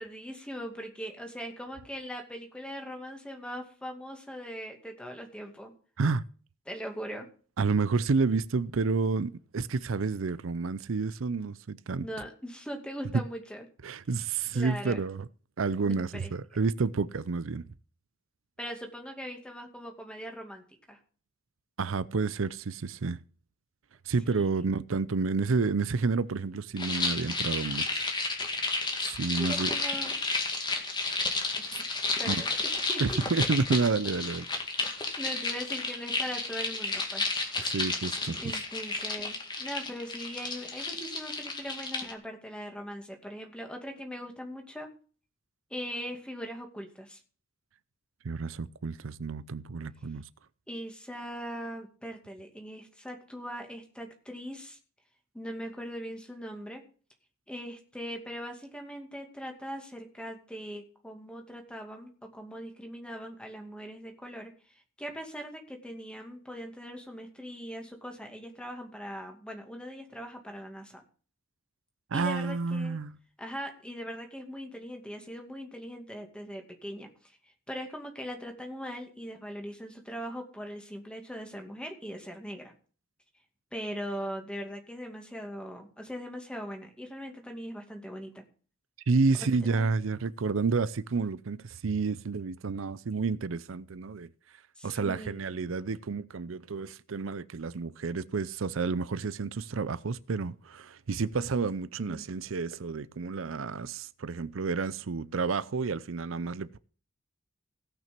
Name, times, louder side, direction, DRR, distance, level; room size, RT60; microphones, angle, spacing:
voice 1, 0.0-5.7 6.7-7.3 12.0-13.7 14.5-15.0 15.8-16.3 18.6-21.0 24.2-24.6 29.4-30.2 32.2-32.5 32.9-33.2 35.2-37.3 38.3-44.9 45.7-47.2 50.7-54.8 55.3-56.8 57.5-64.5 65.0-71.0 72.1-73.0 73.4-77.1 77.7-82.7 83.7-88.4 89.7-89.9 94.8-95.4 102.0-102.2, equal, 5° left, 2.4 m, -40 dB
voice 2, 7.6-12.1 13.1-13.2 13.8-15.3 15.6-17.7 21.8-23.2 24.1-28.0 29.0-29.8 32.3-32.4 33.0-34.5 37.6-38.4 48.2-50.2 72.1-73.1 89.1-94.3 94.8-106.8, right 4 dB, 80° right, 0.6 m, -30 dB
sound 1, 26.8-42.1, left 3 dB, 20° left, 2.1 m, -32 dB
17.0 x 6.1 x 6.0 m
head